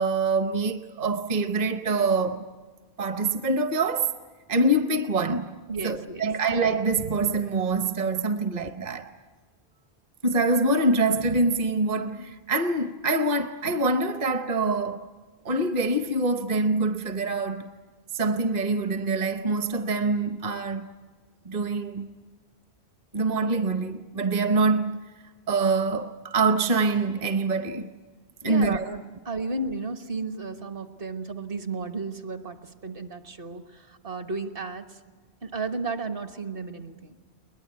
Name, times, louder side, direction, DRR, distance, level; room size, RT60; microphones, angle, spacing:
voice 1, 0.0-2.4 3.0-4.2 4.5-5.6 5.8-9.1 10.2-15.1 15.4-17.7 18.1-20.9 21.4-22.1 23.1-25.0 25.5-27.9 28.4-28.8, right 3 dB, 40° right, 0.9 m, -25 dB
voice 2, 5.7-6.3 8.4-8.5 28.5-35.0 35.4-37.2, right 3 dB, 60° right, 1.5 m, -34 dB
21.5 x 21.0 x 9.5 m
omnidirectional pair, 1.1 m